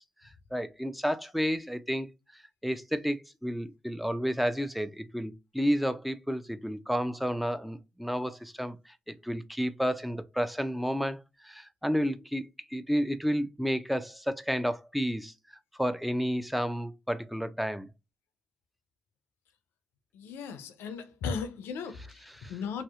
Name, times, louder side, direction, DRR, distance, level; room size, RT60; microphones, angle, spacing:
voice 1, 0.5-2.1 2.6-8.8 9.1-15.3 15.8-17.9 21.9-22.6, equal, ahead, 0.4 m, -31 dB
voice 2, 20.2-21.9 22.5-22.8, left 5 dB, 90° left, 0.4 m, -36 dB
2.7 x 2.0 x 2.2 m
supercardioid pair, 50°, 4 cm